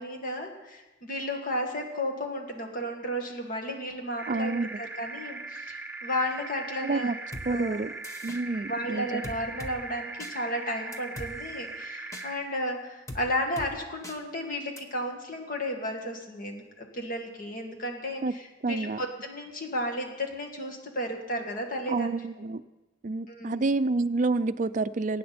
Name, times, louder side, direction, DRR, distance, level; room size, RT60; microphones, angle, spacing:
voice 1, 0.0-7.1 7.5-7.8 8.5-22.1 23.3-23.6, equal, 45° left, 2 dB, 2.0 m, -33 dB
sound 1, 4.2-12.4, right 3 dB, 10° right, 0.8 m, -40 dB
voice 2, 4.3-4.7 6.8-7.1 7.5-7.9 8.2-9.2 18.2-18.3 18.6-19.0 21.9-22.6 23.0-25.2, right 3 dB, 40° right, 12 dB, 0.4 m, -28 dB
sound 2, 7.3-7.5 8.0-8.4 9.2-9.7 10.2-10.3 10.9-11.3 12.1-12.3 13.1-13.2 13.6-13.7 14.0-14.2 14.8-14.9, left 1 dB, 15° left, 1.1 m, -40 dB
22.5 x 9.4 x 4.3 m, 1.1 s
head